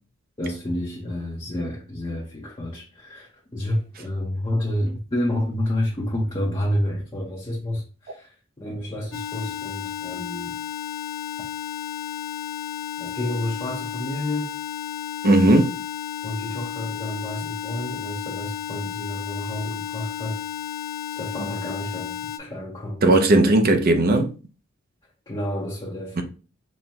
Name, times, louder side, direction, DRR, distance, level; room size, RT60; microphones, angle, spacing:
voice 1, 0.4-10.6 13.0-14.6 16.2-20.4 21.1-23.6 25.3-26.2, left 1 dB, 25° left, 0.7 m, -29 dB
sound 1, 9.1-22.4, left 8 dB, 85° left, 0.5 m, -33 dB
voice 2, 15.2-15.7 21.4-21.5 23.0-24.3 26.2-26.3, right 2 dB, 50° right, 0.6 m, -17 dB
4.2 x 2.1 x 3.4 m
head